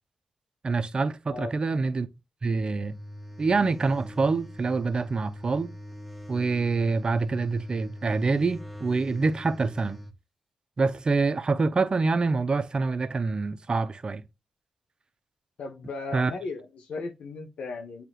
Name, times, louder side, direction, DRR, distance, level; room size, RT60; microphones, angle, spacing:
voice 1, 0.6-2.1 2.4-2.9 3.4-5.7 6.3-10.0 10.8-14.2 16.1-16.3, right 4 dB, 45° right, 0.6 m, -26 dB
sound 1, 2.5-10.2, equal, 5° right, 0.9 m, -42 dB
voice 2, 15.6-18.0, left 3 dB, 75° left, 0.9 m, -36 dB
7.9 x 2.9 x 2.3 m
supercardioid pair, 45°, 2 cm